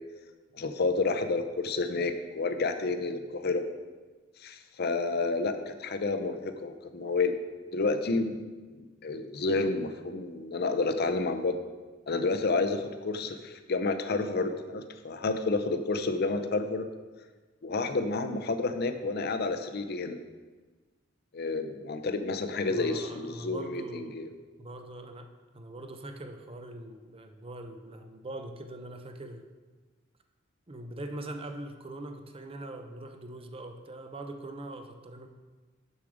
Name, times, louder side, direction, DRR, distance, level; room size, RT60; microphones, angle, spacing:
voice 1, 0.5-3.6 4.4-7.3 7.7-8.4 8.7-11.6 12.1-16.9 17.6-20.2 21.3-24.3, left 3 dB, 55° left, 8 dB, 0.6 m, -30 dB
voice 2, 22.7-24.2 24.6-25.3 25.5-29.5 30.7-35.3, right 1 dB, 30° right, 6 dB, 0.6 m, -42 dB
7.0 x 6.5 x 4.9 m, 1.3 s
head